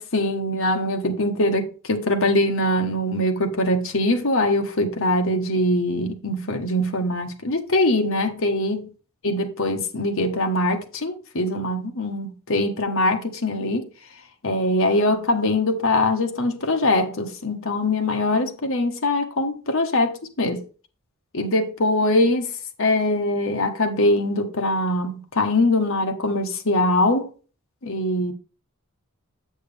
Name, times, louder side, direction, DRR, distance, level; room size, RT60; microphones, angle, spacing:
voice 1, 0.0-8.8 9.2-13.9 14.4-20.6 21.3-22.5 22.8-27.3 27.8-28.3, left 1 dB, 65° left, 1.5 m, -22 dB
8.3 x 6.3 x 3.4 m
head